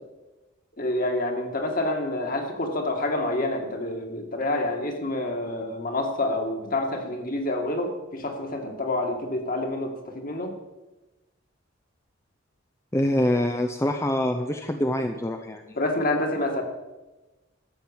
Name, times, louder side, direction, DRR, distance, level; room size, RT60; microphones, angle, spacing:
voice 1, 0.8-10.5 15.8-16.6, left 2 dB, 45° left, 3 dB, 2.2 m, -28 dB
voice 2, 12.9-15.6, left 1 dB, 15° left, 5 dB, 0.6 m, -25 dB
13.5 x 7.9 x 7.2 m, 1.1 s
head